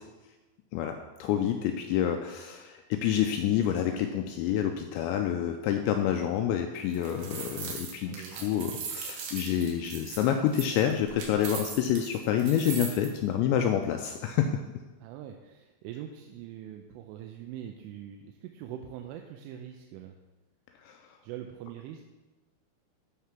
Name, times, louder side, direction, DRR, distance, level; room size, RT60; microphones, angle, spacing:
voice 1, 0.7-14.6 20.8-21.0, left 9 dB, 85° left, 5 dB, 2.6 m, -28 dB
sound 1, 6.8-13.1, right 6 dB, 65° right, 3.3 m, -39 dB
voice 2, 8.1-8.5 15.0-20.2 21.2-22.0, right 10 dB, 90° right, 4 dB, 3.1 m, -43 dB
11.5 x 4.7 x 5.9 m, 1.1 s
omnidirectional pair, 5.6 m